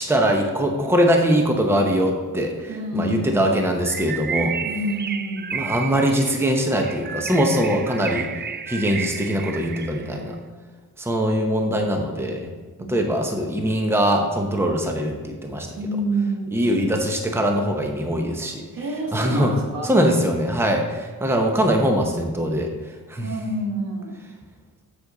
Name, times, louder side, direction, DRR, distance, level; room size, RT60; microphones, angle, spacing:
voice 1, 0.0-4.6 5.5-8.3 8.7-10.4 11.0-12.5 12.8-15.7 16.5-18.6 19.1-19.5 19.8-22.7 23.1-23.3, equal, 5° right, 2 dB, 0.9 m, -22 dB
voice 2, 2.7-3.6 4.7-5.5 10.0-10.4 12.8-12.9 15.8-16.8 18.8-20.0 23.2-24.2, right 1 dB, 75° right, -1 dB, 2.0 m, -28 dB
Bird, 3.8-10.2, right 6 dB, 30° right, 0.4 m, -32 dB
7.6 x 6.9 x 4.0 m, 1.5 s
cardioid pair, 100°, 34 cm